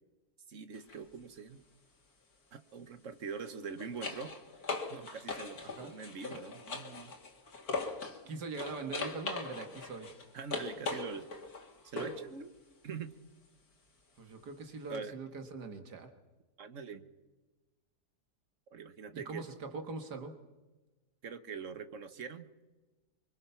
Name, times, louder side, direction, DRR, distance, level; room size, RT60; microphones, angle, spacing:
voice 1, 0.5-1.6 2.5-4.4 4.9-7.1 10.3-11.3 11.8-12.5 12.8-13.1 14.9-15.2 16.6-17.0 18.7-19.5 21.2-22.5, right 6 dB, 55° right, 11 dB, 1.5 m, -43 dB
sound 1, 0.7-1.0 3.3-8.2 8.5-12.3 14.9-15.0, left 3 dB, 65° left, 2.7 m, -40 dB
voice 2, 8.2-10.1 14.2-16.1 19.1-20.4, right 3 dB, 85° right, 6 dB, 2.4 m, -42 dB
25.0 x 24.0 x 5.8 m, 1.2 s
omnidirectional pair, 1.7 m